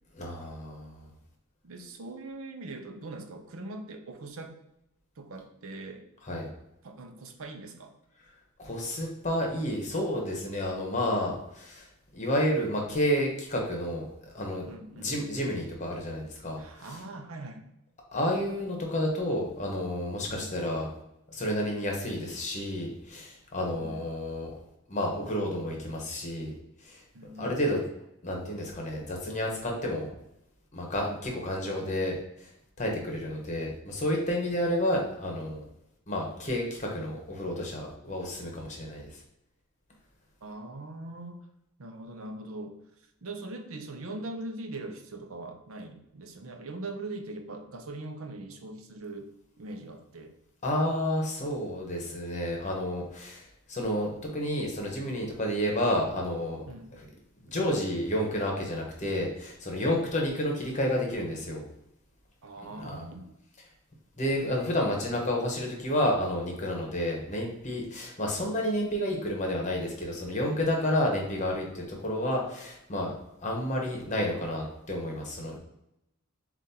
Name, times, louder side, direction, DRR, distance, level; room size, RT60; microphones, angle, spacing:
voice 1, 0.1-1.1 6.2-6.5 8.6-11.9 12.1-14.7 14.9-17.0 18.1-20.9 21.3-24.5 24.9-26.5 26.8-27.0 27.4-27.8 28.2-30.1 30.7-32.5 32.8-35.6 36.1-39.2 50.6-56.6 56.9-57.1 57.4-61.6 62.7-63.1 64.2-73.1 73.4-75.6, left 1 dB, 35° left, 0 dB, 1.0 m, -30 dB
voice 2, 1.6-4.5 5.2-6.1 6.8-7.9 14.7-15.1 16.6-17.7 20.3-20.5 23.7-24.1 27.1-27.5 40.4-41.4 41.8-42.8 43.2-49.3 49.6-50.3 56.7-56.9 59.9-60.1 62.4-63.3, right 2 dB, 70° right, 5 dB, 0.6 m, -41 dB
7.2 x 2.5 x 2.8 m, 0.84 s
head